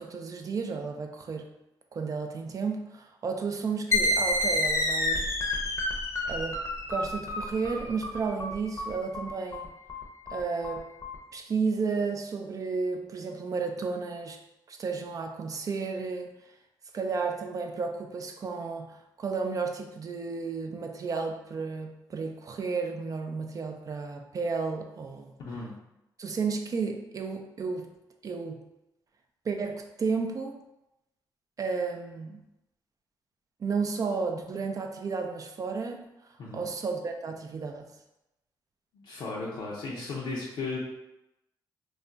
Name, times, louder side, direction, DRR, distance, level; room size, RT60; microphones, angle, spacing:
voice 1, 0.0-1.5 1.9-5.3 6.3-6.6 6.9-9.7 10.3-10.9 11.3-14.4 14.7-16.3 16.9-25.4 26.2-27.9 28.2-28.7 29.4-30.6 31.6-32.4 33.6-36.0 36.5-37.9, right 4 dB, 45° right, 4 dB, 0.3 m, -32 dB
sound 1, 3.9-11.2, left 1 dB, 35° left, 0.6 m, -29 dB
voice 2, 25.5-25.8 36.4-36.7 38.9-40.8, left 3 dB, 70° left, -5 dB, 0.6 m, -35 dB
2.3 x 2.2 x 3.7 m, 0.90 s
cardioid pair, 75°, 8 cm